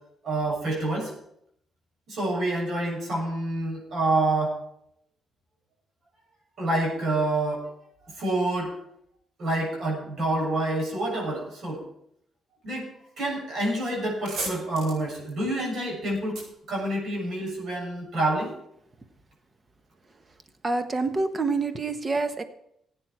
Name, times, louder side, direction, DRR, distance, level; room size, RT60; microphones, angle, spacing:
voice 1, 0.2-1.1 2.1-4.5 6.6-7.6 8.2-8.7 9.4-11.8 12.6-12.9 13.2-16.4 16.7-18.5, right 2 dB, 60° right, -1 dB, 6.8 m, -27 dB
sound 1, 14.0-17.6, right 2 dB, 80° right, 5.0 m, -38 dB
voice 2, 20.6-22.4, right 3 dB, 30° right, 9 dB, 1.3 m, -27 dB
15.5 x 9.0 x 4.9 m, 0.73 s
cardioid pair, 90°, 0 cm